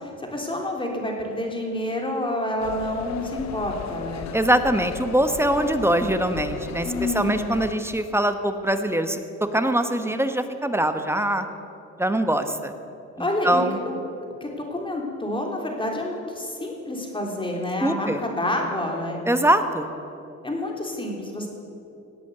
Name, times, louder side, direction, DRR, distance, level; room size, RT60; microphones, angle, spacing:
voice 1, 0.0-4.3 6.8-7.5 13.2-14.0 14.4-19.2 20.4-21.5, left 1 dB, 15° left, 0 dB, 3.4 m, -28 dB
sound 1, 2.6-7.7, left 8 dB, 65° left, 0.8 m, -36 dB
voice 2, 4.3-11.5 12.0-12.7 13.2-13.8 17.8-18.2 19.3-19.9, right 1 dB, 10° right, 8 dB, 1.1 m, -23 dB
18.0 x 8.5 x 7.9 m, 2.7 s
cardioid pair, 90°, 30 cm